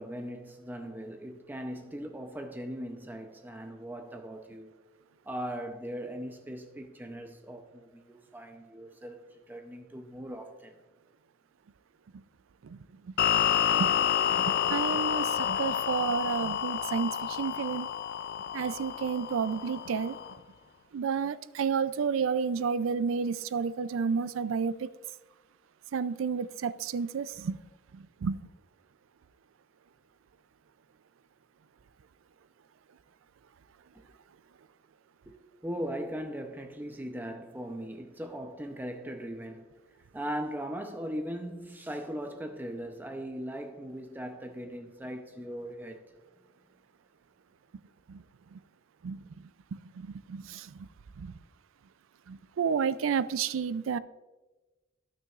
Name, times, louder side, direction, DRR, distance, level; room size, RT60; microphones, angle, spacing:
voice 1, 0.0-4.7 5.2-10.8 33.9-34.1 35.3-35.4 35.6-39.7 40.1-46.1, equal, 10° right, 0.6 m, -39 dB
voice 2, 12.6-13.1 13.8-14.0 14.3-17.9 18.5-20.2 20.9-24.9 25.9-27.6 27.9-28.4 48.1-48.2 48.5-48.6 49.0-49.3 49.7-50.9 51.2-51.3 52.3-54.0, right 6 dB, 85° right, 0.4 m, -31 dB
sound 1, 13.2-20.4, left 9 dB, 55° left, 0.3 m, -29 dB
15.0 x 6.2 x 2.4 m
head